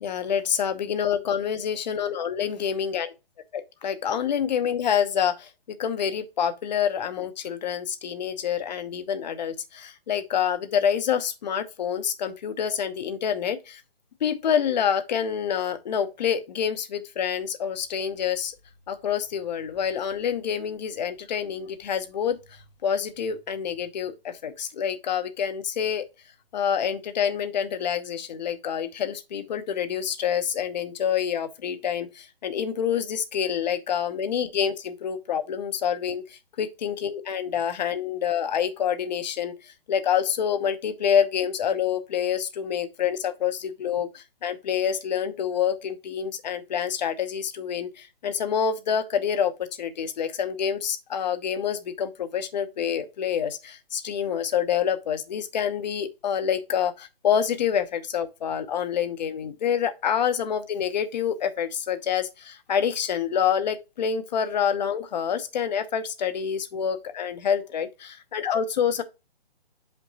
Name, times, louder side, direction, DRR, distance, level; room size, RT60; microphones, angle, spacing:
voice 1, 0.0-3.1 3.5-5.5 5.8-13.8 14.2-18.5 18.9-22.4 22.8-26.0 26.5-39.5 39.9-69.0, left 8 dB, 45° left, 1.0 m, -27 dB
7.6 x 5.3 x 2.7 m
hypercardioid pair, 145°, 30 cm